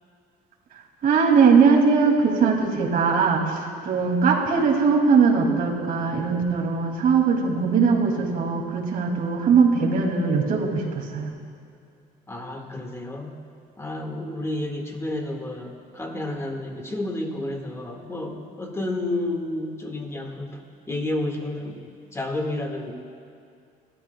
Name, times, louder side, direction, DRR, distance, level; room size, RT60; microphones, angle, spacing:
voice 1, 1.0-11.3, right 5 dB, 60° right, 0 dB, 2.6 m, -20 dB
voice 2, 12.3-13.3 13.8-20.6 20.9-21.8 22.1-22.9, left 1 dB, 15° left, 2 dB, 1.9 m, -30 dB
27.0 x 13.0 x 2.3 m, 2.4 s
cardioid pair, 110°, 17 cm